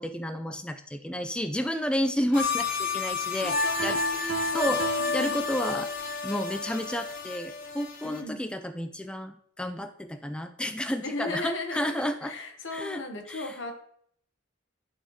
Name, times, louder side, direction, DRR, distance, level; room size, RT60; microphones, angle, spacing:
voice 1, 0.0-3.6 3.8-4.8 5.1-5.9 6.2-12.3 12.7-13.5, equal, 5° left, 7 dB, 0.3 m, -31 dB
sound 1, 2.3-8.2, left 4 dB, 40° left, 0.8 m, -30 dB
voice 2, 3.4-5.4 8.0-8.4 11.0-13.7, left 2 dB, 65° left, 4 dB, 1.2 m, -37 dB
Piano, 3.8-6.1, right 3 dB, 75° right, 0.7 m, -36 dB
11.5 x 4.3 x 3.1 m, 0.65 s
head